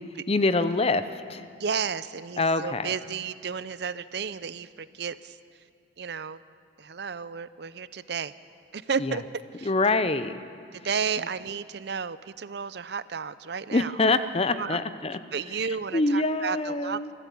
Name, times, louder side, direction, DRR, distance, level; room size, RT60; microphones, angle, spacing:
voice 1, 0.3-1.5 2.4-2.9 9.0-9.2 9.6-10.4 13.7-15.2 15.5-17.1, left 2 dB, 35° left, 12 dB, 0.7 m, -25 dB
voice 2, 1.6-5.4 6.0-6.4 6.8-8.3 8.7-9.2 9.6-9.7 10.7-13.9 14.5-14.8 15.3-17.1, right 6 dB, 65° right, 15 dB, 0.6 m, -32 dB
23.0 x 14.5 x 8.6 m, 2.3 s
head